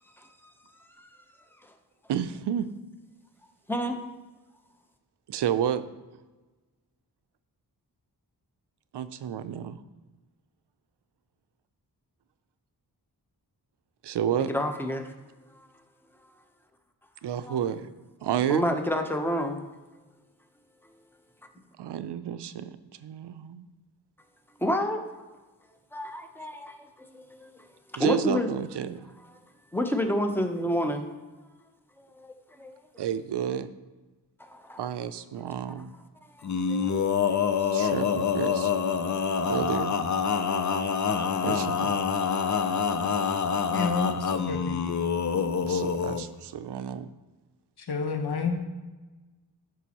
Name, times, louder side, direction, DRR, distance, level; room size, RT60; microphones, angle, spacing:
voice 1, 2.1-2.7 5.3-5.8 8.9-9.8 14.0-14.5 17.2-17.9 18.2-18.6 21.8-23.7 28.0-29.0 33.0-33.7 34.8-35.9 37.7-38.7 39.5-40.0 41.4-42.0 45.6-47.1, right 9 dB, 90° right, 13 dB, 0.6 m, -30 dB
voice 2, 3.7-4.0 14.4-15.1 17.4-17.6 18.5-19.6 24.6-25.0 25.9-26.9 27.1-27.5 28.0-28.5 29.7-31.0 32.6-32.7 34.4-34.8 36.4-37.0 37.4-37.5, equal, 5° left, 4 dB, 0.8 m, -29 dB
Male singing, 36.4-46.2, left 6 dB, 45° left, 0.6 m, -26 dB
voice 3, 43.7-44.8 47.8-48.6, left 4 dB, 70° left, 4 dB, 1.2 m, -29 dB
12.5 x 6.1 x 3.0 m, 1.2 s
wide cardioid pair, 105°, 40 cm